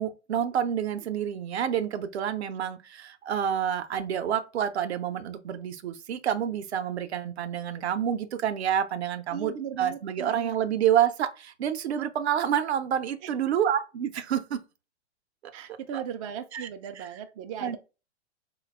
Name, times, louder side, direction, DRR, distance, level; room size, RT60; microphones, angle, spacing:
voice 1, 0.0-14.6 15.9-16.0 16.5-16.7 17.0-17.1 17.6-17.8, right 9 dB, 65° right, 0.7 m, -28 dB
voice 2, 9.3-10.6 15.5-17.8, right 8 dB, 30° right, 0.4 m, -37 dB
3.9 x 2.3 x 3.2 m
figure-of-eight pair, 105°, 35 cm